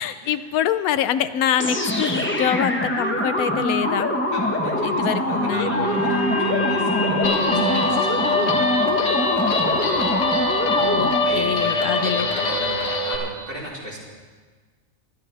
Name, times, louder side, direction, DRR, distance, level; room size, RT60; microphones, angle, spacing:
voice 1, 0.0-4.1 4.8-5.7 10.8-11.1 11.3-12.3, left 10 dB, 85° left, 13 dB, 1.1 m, -25 dB
sound 1, 1.6-11.4, left 1 dB, 10° left, 1.0 m, -24 dB
voice 2, 4.3-10.1 10.6-10.9 11.2-14.0, right 1 dB, 40° right, -4 dB, 3.1 m, -36 dB
sound 2, 5.7-10.0, left 1 dB, 30° left, 2.1 m, -27 dB
Guitar, 7.2-13.2, left 3 dB, 60° left, 1.6 m, -23 dB
20.0 x 12.5 x 3.4 m, 1.4 s
omnidirectional pair, 1.5 m